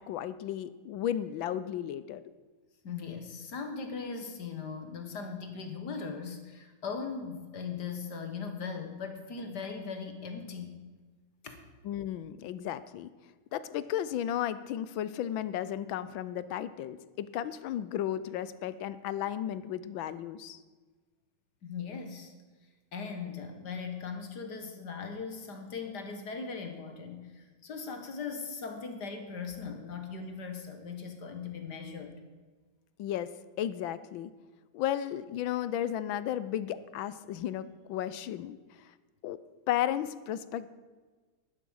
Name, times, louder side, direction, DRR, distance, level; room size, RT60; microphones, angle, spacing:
voice 1, 0.0-2.2 11.8-13.1 13.5-20.6 33.0-33.3 33.6-34.3 34.7-38.9 39.2-39.4 39.7-40.7, left 11 dB, 75° left, 15 dB, 1.3 m, -34 dB
voice 2, 2.8-10.8 11.4-11.6 21.6-22.3 22.9-32.2, left 5 dB, 55° left, 6 dB, 1.9 m, -39 dB
12.0 x 11.0 x 6.3 m, 1.3 s
omnidirectional pair, 2.3 m